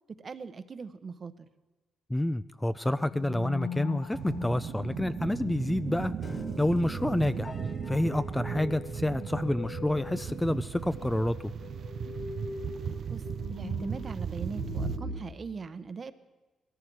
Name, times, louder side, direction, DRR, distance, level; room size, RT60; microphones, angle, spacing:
voice 1, 0.2-1.5 13.1-13.2 13.5-16.1, right 5 dB, 40° right, 12 dB, 0.9 m, -40 dB
voice 2, 2.1-6.1 6.6-7.5 7.9-11.4, left 1 dB, 10° left, 13 dB, 0.4 m, -28 dB
sound 1, 3.1-15.2, left 4 dB, 75° left, 2.4 m, -42 dB
sound 2, 4.1-15.0, right 7 dB, 55° right, 0.4 m, -36 dB
Piano, 6.2-12.4, left 3 dB, 35° left, 1.0 m, -49 dB
19.0 x 14.0 x 4.7 m, 1.2 s
cardioid pair, 90°, 0 cm